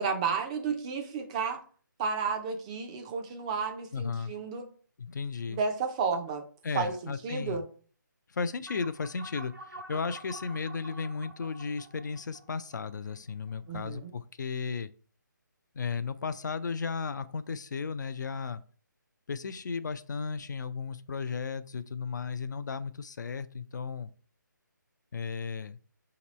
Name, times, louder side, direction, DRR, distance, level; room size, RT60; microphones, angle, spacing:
voice 1, 0.0-1.6 2.0-4.7 5.5-6.4 6.7-7.7 13.7-14.1, right 5 dB, 20° right, 4 dB, 0.4 m, -32 dB
voice 2, 3.9-4.3 5.0-5.6 6.6-7.7 8.3-14.9 15.7-18.6 19.3-24.1 25.1-25.8, left 5 dB, 60° left, 12 dB, 0.4 m, -35 dB
sound 1, 8.7-13.5, right 1 dB, 65° right, 0.7 m, -48 dB
5.1 x 2.9 x 3.0 m, 0.42 s
figure-of-eight pair, 150°, 11 cm